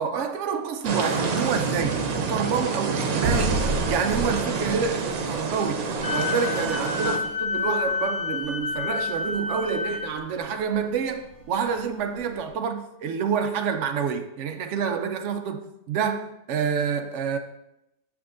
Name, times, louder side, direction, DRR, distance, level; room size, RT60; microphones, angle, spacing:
voice 1, 0.0-17.4, right 6 dB, 65° right, 0.8 m, -28 dB
sound 1, 0.8-7.2, right 4 dB, 85° right, 1.2 m, -27 dB
sound 2, 3.2-12.5, right 2 dB, 40° right, 2.0 m, -36 dB
Wind instrument woodwind instrument, 6.0-10.1, left 5 dB, 50° left, 1.3 m, -29 dB
7.0 x 6.1 x 2.5 m
omnidirectional pair, 1.5 m